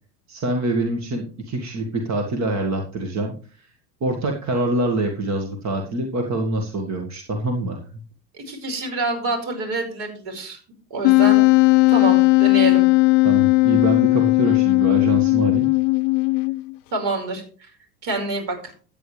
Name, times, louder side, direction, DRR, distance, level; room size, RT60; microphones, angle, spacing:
voice 1, 0.3-3.7 4.0-7.8 13.2-15.7, right 2 dB, 35° right, 4 dB, 1.9 m, -25 dB
voice 2, 8.4-10.6 10.9-11.5 11.9-12.9 16.9-17.4 18.0-18.7, right 2 dB, 50° right, 3 dB, 5.2 m, -26 dB
Wind instrument woodwind instrument, 11.0-16.7, left 24 dB, 50° left, 0.6 m, -16 dB
13.5 x 8.9 x 3.3 m, 0.39 s
hypercardioid pair, 90°, 49 cm